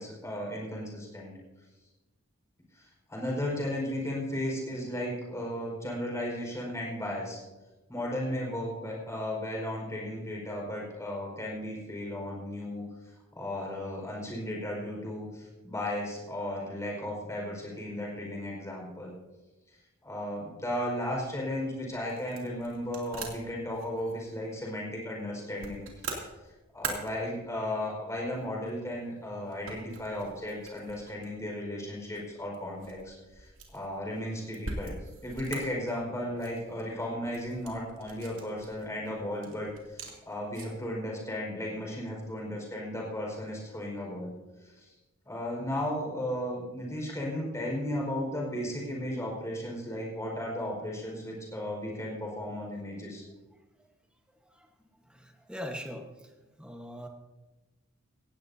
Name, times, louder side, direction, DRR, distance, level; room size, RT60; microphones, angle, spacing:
voice 1, 0.0-1.3 2.7-7.4 7.9-12.8 13.3-19.1 20.0-25.8 26.7-34.9 35.2-44.3 44.6-44.9 45.2-53.2, left 1 dB, 15° left, -2 dB, 4.8 m, -35 dB
sound 1, 21.3-40.9, right 4 dB, 65° right, 2.7 m, -45 dB
voice 2, 55.0-56.3 56.6-57.1, equal, 5° right, 3 dB, 1.3 m, -42 dB
17.5 x 16.5 x 2.8 m, 1.1 s
head